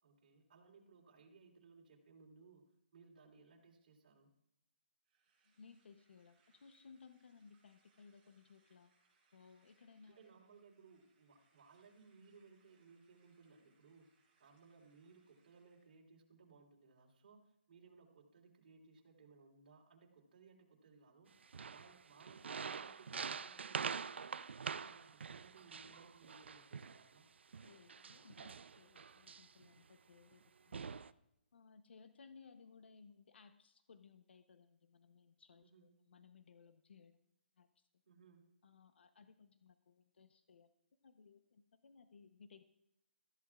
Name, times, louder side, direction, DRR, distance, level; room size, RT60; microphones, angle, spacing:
voice 1, 0.0-2.6 2.9-4.3 10.1-14.1 14.4-24.3 24.6-27.3 35.6-35.9 38.0-38.5, right 4 dB, 50° right, -2 dB, 3.3 m, -63 dB
sound 1, 5.0-16.0, right 4 dB, 25° right, 5.0 m, -79 dB
voice 2, 5.4-8.9 9.3-10.2 27.6-30.9 31.5-37.2 37.6-37.8 38.6-40.7 41.0-42.6, left 5 dB, 75° left, 10 dB, 0.8 m, -62 dB
sound 2, 21.4-27.0 27.5-29.7 30.3-30.4 30.7-31.1, right 6 dB, 85° right, 0.5 m, -45 dB
19.5 x 14.0 x 2.4 m, 0.85 s
hypercardioid pair, 165°, 6 cm